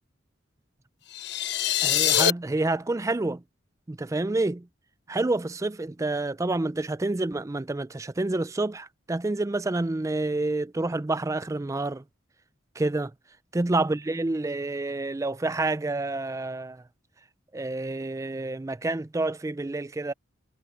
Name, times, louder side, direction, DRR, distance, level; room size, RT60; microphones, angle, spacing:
sound 1, 1.1-2.3, left 10 dB, 60° left, 1.0 m, -23 dB
voice 1, 1.8-3.4 3.9-4.7 5.1-12.0 12.8-13.1 13.5-16.8 17.5-20.1, right 2 dB, 15° right, 0.4 m, -28 dB
head